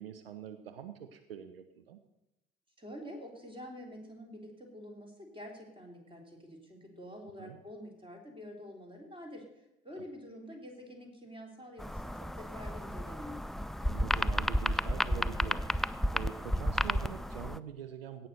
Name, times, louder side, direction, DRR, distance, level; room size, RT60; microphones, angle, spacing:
voice 1, 0.0-2.0 7.4-7.6 10.0-10.1 13.8-18.3, right 9 dB, 80° right, 10 dB, 0.7 m, -45 dB
voice 2, 2.8-9.5 9.8-13.4, equal, 15° right, 2 dB, 3.4 m, -47 dB
sound 1, 11.8-17.6, equal, ahead, 0.4 m, -32 dB
16.5 x 5.9 x 6.7 m, 0.90 s
figure-of-eight pair, 50°, 29 cm